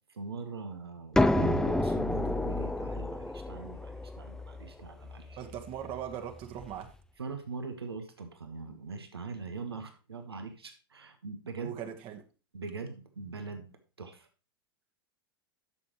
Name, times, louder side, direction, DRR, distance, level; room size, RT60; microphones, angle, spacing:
voice 1, 0.1-5.4 7.2-11.7 12.5-13.7 14.0-14.3, right 4 dB, 85° right, 7 dB, 1.3 m, -41 dB
sound 1, 1.2-6.7, left 1 dB, 5° left, 0.6 m, -30 dB
voice 2, 5.4-6.9 11.6-12.2, right 9 dB, 45° right, 5 dB, 1.5 m, -39 dB
11.5 x 6.8 x 3.1 m, 0.33 s
figure-of-eight pair, 90°, 13 cm